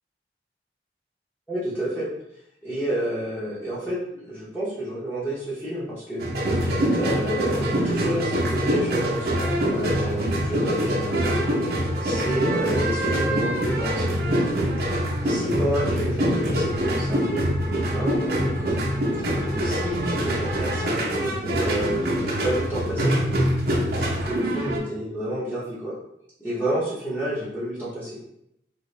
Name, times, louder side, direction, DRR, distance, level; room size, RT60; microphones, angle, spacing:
voice 1, 1.5-2.1 2.6-6.2 6.9-11.5 12.0-14.3 15.2-18.7 19.5-23.2 24.0-25.9 26.4-28.2, right 1 dB, 10° left, -11 dB, 0.8 m, -29 dB
sound 1, 6.2-24.8, equal, 55° right, 0.7 m, -24 dB
2.8 x 2.8 x 3.2 m, 0.81 s
head